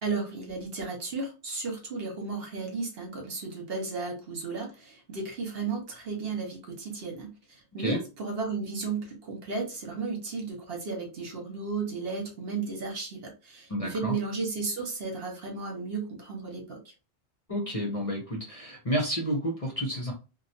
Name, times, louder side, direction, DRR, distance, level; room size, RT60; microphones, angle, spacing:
voice 1, 0.0-16.9, right 4 dB, 60° right, 1 dB, 1.1 m, -34 dB
voice 2, 13.7-14.2 17.5-20.1, equal, 35° left, 0 dB, 0.7 m, -30 dB
3.1 x 2.2 x 2.7 m, 0.30 s
omnidirectional pair, 1.2 m